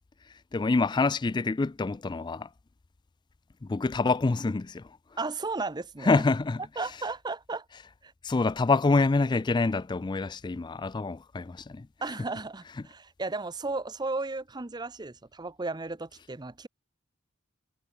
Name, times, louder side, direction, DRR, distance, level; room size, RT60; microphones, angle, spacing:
voice 1, 0.5-2.5 3.6-5.0 6.0-6.6 8.2-11.9, left 3 dB, 20° left, 0.3 m, -26 dB
voice 2, 5.2-6.2 6.8-7.7 8.0-8.1 12.0-16.7, right 3 dB, 20° right, 0.7 m, -34 dB
head